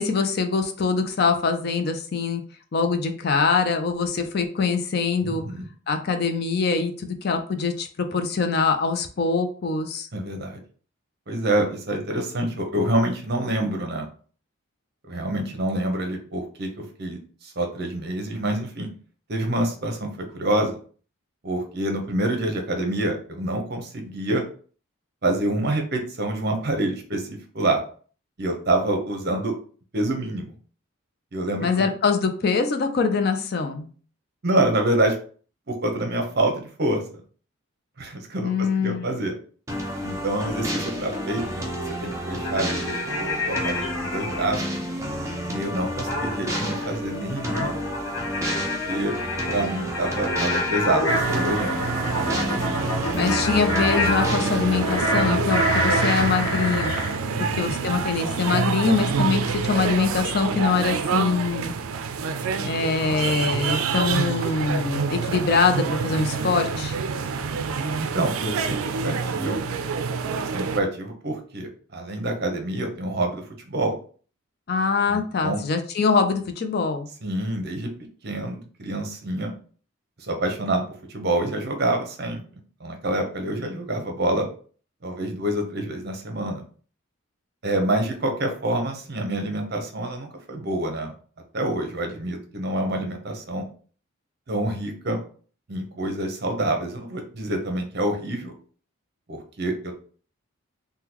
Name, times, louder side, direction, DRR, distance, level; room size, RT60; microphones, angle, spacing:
voice 1, 0.0-2.4 2.7-5.4 5.9-10.1 31.6-33.9 38.4-39.1 53.1-57.0 57.4-61.7 62.6-67.0 74.7-77.1, left 5 dB, 50° left, 7 dB, 0.4 m, -23 dB
voice 2, 5.2-5.6 10.1-10.6 11.3-14.1 15.1-18.9 19.3-20.8 21.4-24.4 25.2-27.8 28.4-29.5 29.9-30.5 31.3-31.9 34.4-35.1 35.7-37.0 38.0-39.3 40.0-41.7 42.0-44.6 45.5-47.8 48.5-49.1 49.5-51.8 52.5-52.8 57.3-57.7 63.0-63.4 63.7-63.8 67.8-69.6 70.4-73.4 73.7-74.0 75.1-75.6 77.2-77.9 78.2-79.5 80.2-80.8 81.1-82.4 82.8-84.5 85.0-86.6 87.6-91.1 91.5-93.7 94.5-95.2 95.7-98.5 99.3-99.9, right 1 dB, 50° right, 3 dB, 0.7 m, -27 dB
sound 1, 39.7-55.2, equal, 15° right, 0.5 m, -31 dB
sound 2, 42.4-44.5 46.1-57.2, left 1 dB, 75° left, 0.9 m, -27 dB
sound 3, 51.1-70.8, right 5 dB, 80° right, 0.4 m, -27 dB
3.7 x 2.2 x 2.9 m, 0.42 s
head